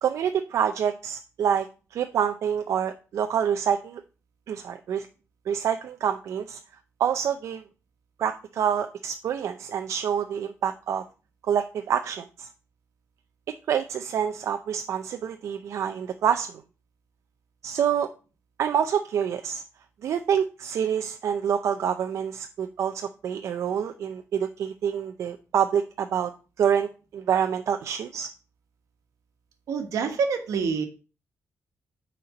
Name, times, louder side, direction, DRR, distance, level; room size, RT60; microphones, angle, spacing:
voice 1, 0.0-4.0 4.5-5.1 5.5-6.6 7.0-7.6 8.2-11.0 11.5-12.5 13.7-16.5 17.6-18.1 18.6-19.6 20.0-26.3 26.6-28.3, right 8 dB, 60° right, 7 dB, 0.4 m, -27 dB
voice 2, 29.7-30.9, right 5 dB, 80° right, 6 dB, 1.3 m, -26 dB
6.5 x 4.3 x 5.1 m, 0.36 s
wide cardioid pair, 170°, 6 cm